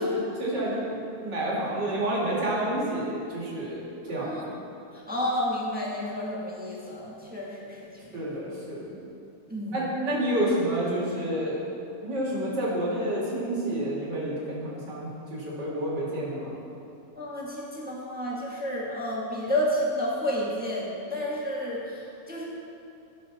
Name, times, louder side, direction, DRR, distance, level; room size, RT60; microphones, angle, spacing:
voice 1, 0.0-3.8 4.1-4.5 8.1-9.0 9.7-11.6 12.0-16.5, right 1 dB, 55° right, -6 dB, 3.0 m, -29 dB
voice 2, 4.2-4.5 5.1-8.1 9.5-9.8 17.2-22.4, left 1 dB, 5° right, -5 dB, 1.2 m, -31 dB
17.0 x 5.8 x 4.2 m, 2.7 s
omnidirectional pair, 2.4 m